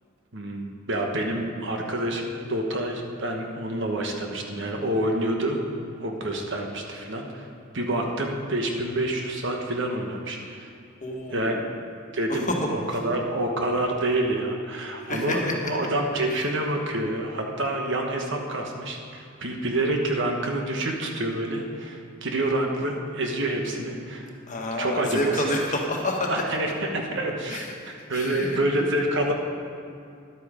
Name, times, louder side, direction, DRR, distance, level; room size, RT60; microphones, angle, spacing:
voice 1, 0.3-5.6 6.0-7.5 7.7-10.7 11.3-11.6 12.1-24.3 24.8-25.5 26.3-29.3, right 1 dB, 65° right, 2 dB, 1.3 m, -27 dB
voice 2, 11.0-11.6 12.3-12.7 14.9-15.5 16.3-16.4 24.5-26.4 27.5-28.6, left 1 dB, 40° left, 0 dB, 1.5 m, -29 dB
11.5 x 8.6 x 5.0 m, 2.4 s
head